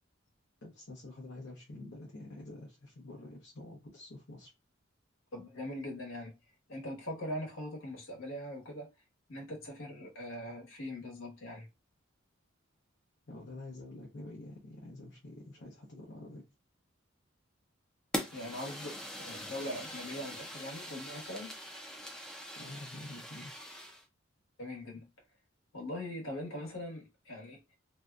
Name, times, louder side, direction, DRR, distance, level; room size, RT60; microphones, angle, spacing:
voice 1, 0.6-4.5 13.3-16.4 22.6-23.5, left 2 dB, 60° left, 0.7 m, -47 dB
voice 2, 5.3-6.3 6.7-8.9 9.3-11.7 18.3-21.5 24.6-25.1 25.7-27.8, left 1 dB, 80° left, 1.1 m, -41 dB
Fire, 18.1-24.0, equal, 5° left, 0.4 m, -42 dB
2.7 x 2.2 x 2.3 m
head